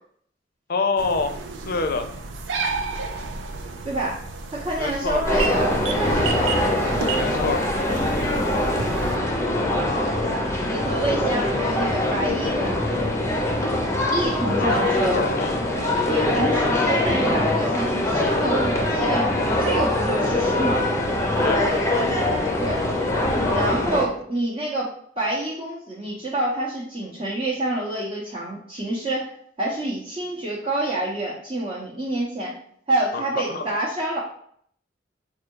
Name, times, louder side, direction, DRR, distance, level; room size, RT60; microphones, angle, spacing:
voice 1, 0.7-1.4 1.7-2.1 4.8-5.2 7.1-7.6 14.6-15.8 21.4-21.6 33.1-33.7, left 4 dB, 55° left, 8 dB, 0.5 m, -26 dB
sound 1, 1.0-9.2, right 3 dB, 80° right, 0.5 m, -31 dB
voice 2, 3.8-4.2 4.5-6.7 10.6-13.0 14.1-15.2 16.1-20.8 22.6-22.8 23.5-24.9 25.2-29.3 29.6-32.5 32.9-34.2, right 1 dB, 30° right, -7 dB, 0.8 m, -27 dB
sound 2, 5.3-24.1, left 1 dB, 15° left, 0.6 m, -23 dB
4.8 x 2.3 x 4.5 m, 0.64 s
head